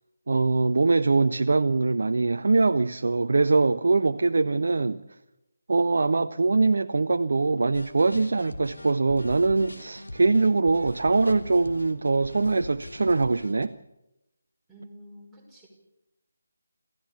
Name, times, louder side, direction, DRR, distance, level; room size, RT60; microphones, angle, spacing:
voice 1, 0.3-5.0 5.7-13.7, right 3 dB, 50° right, 0.7 m, -22 dB
sound 1, 7.7-13.7, left 1 dB, 70° left, 2.9 m, -42 dB
voice 2, 14.7-15.7, equal, ahead, 5.6 m, -48 dB
27.0 x 16.0 x 6.9 m
figure-of-eight pair, 155°, 0 cm